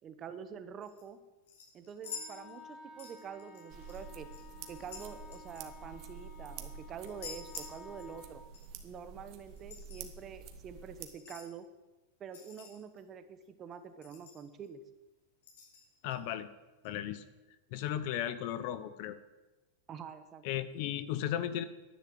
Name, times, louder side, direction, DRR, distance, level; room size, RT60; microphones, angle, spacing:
voice 1, 0.0-1.2 1.7-4.3 4.7-8.4 8.8-11.7 12.2-14.8 19.9-20.5, right 7 dB, 25° right, 10 dB, 1.0 m, -46 dB
sound 1, 0.8-1.0 1.5-2.7 3.0-4.0 4.3-6.4 7.0-8.3 8.5-8.7 9.5-10.0 11.0-11.5 12.3-13.0 13.4-13.5 13.7-13.8 14.0-14.7 15.4-16.2 16.8-16.9, left 6 dB, 80° left, 5.5 m, -49 dB
Wind instrument woodwind instrument, 2.0-8.4, left 3 dB, 25° left, 4.7 m, -53 dB
sound 2, 3.7-11.0, right 6 dB, 40° right, 1.4 m, -49 dB
voice 2, 16.0-16.5 16.8-17.2 17.7-19.2 20.4-21.6, left 11 dB, 50° left, 13 dB, 0.8 m, -35 dB
11.0 x 10.0 x 7.8 m, 1.1 s
supercardioid pair, 160°, 0 cm